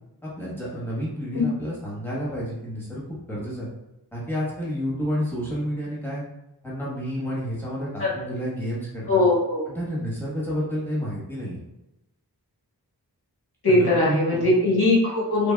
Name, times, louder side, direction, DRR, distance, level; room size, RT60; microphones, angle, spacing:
voice 1, 0.2-3.7 4.1-6.2 6.6-9.2 9.7-11.6 13.7-14.5, equal, 5° left, -7 dB, 1.2 m, -30 dB
voice 2, 9.1-9.6 13.6-15.5, left 2 dB, 70° left, -7 dB, 1.2 m, -20 dB
3.4 x 2.1 x 2.2 m, 0.92 s
wide cardioid pair, 45°, 40 cm